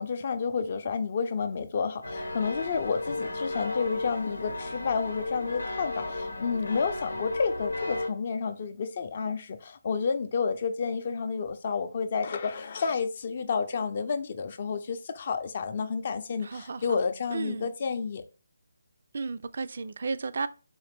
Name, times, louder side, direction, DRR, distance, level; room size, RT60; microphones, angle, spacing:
voice 1, 0.0-18.2, left 5 dB, 45° left, 0.4 m, -30 dB
sound 1, 2.0-8.1, left 2 dB, 80° left, 0.7 m, -34 dB
voice 2, 16.4-17.0 17.3-17.7 19.1-20.5, right 4 dB, 55° right, 0.3 m, -33 dB
3.8 x 2.5 x 3.4 m
figure-of-eight pair, 155°, 0 cm